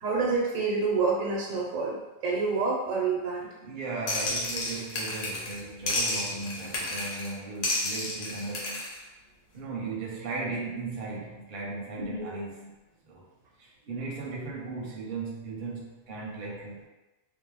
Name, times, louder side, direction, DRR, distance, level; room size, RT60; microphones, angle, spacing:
voice 1, 0.0-2.0 2.2-3.5 12.0-12.4, right 4 dB, 85° right, -2 dB, 1.1 m, -28 dB
voice 2, 3.6-8.8 9.5-12.7 13.0-13.2 13.6-16.9, right 3 dB, 50° right, -3 dB, 0.6 m, -37 dB
sound 1, 4.1-5.6 5.9-7.3 7.6-9.0, left 2 dB, 75° left, 1.0 m, -31 dB
2.6 x 2.0 x 3.0 m, 1.1 s
omnidirectional pair, 1.3 m